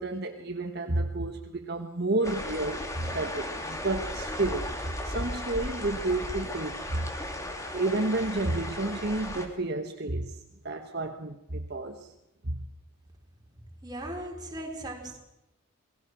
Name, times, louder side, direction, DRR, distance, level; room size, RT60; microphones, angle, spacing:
voice 1, 0.0-4.7 5.0-7.1 7.7-10.4 10.6-12.1 12.4-12.6, right 2 dB, 50° right, 4 dB, 1.3 m, -31 dB
sound 1, 2.2-9.5, left 1 dB, 15° left, 2.5 m, -36 dB
voice 2, 13.8-15.2, right 1 dB, 20° right, 1 dB, 4.3 m, -38 dB
27.5 x 20.0 x 6.2 m, 0.92 s
head